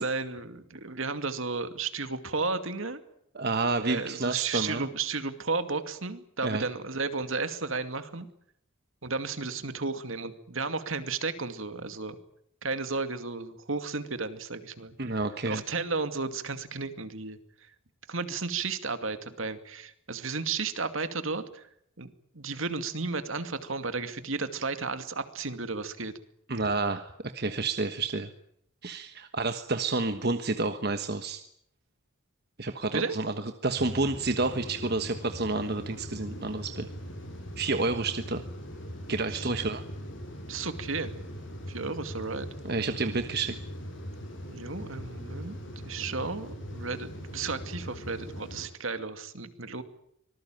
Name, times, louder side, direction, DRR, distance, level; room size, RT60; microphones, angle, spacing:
voice 1, 0.0-3.0 3.8-8.3 9.0-12.2 12.6-15.2 15.5-17.4 18.1-21.7 22.0-22.1 22.3-26.1 32.9-33.2 39.3-39.7 40.5-41.1 41.7-42.5 44.5-45.6 45.8-49.8, right 4 dB, 70° right, 9 dB, 2.4 m, -33 dB
voice 2, 3.3-4.9 6.4-6.6 15.0-15.6 26.5-28.3 28.8-31.4 32.6-33.3 33.6-36.9 37.6-38.4 39.1-39.8 42.6-43.6, right 3 dB, 50° right, 8 dB, 1.3 m, -29 dB
sound 1, 33.8-48.7, equal, 60° left, 7.2 m, -41 dB
25.5 x 19.5 x 9.2 m, 0.73 s
head